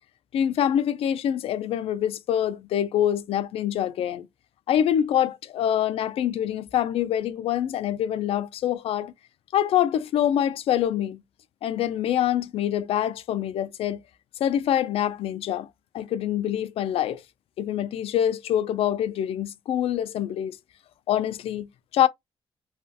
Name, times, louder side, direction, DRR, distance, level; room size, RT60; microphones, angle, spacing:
voice 1, 0.3-4.3 4.7-9.1 9.5-11.2 11.6-14.0 14.4-15.7 15.9-17.2 17.6-20.6 21.1-22.1, left 10 dB, 90° left, 0.4 m, -25 dB
3.2 x 2.3 x 2.7 m
wide cardioid pair, 145°, 10 cm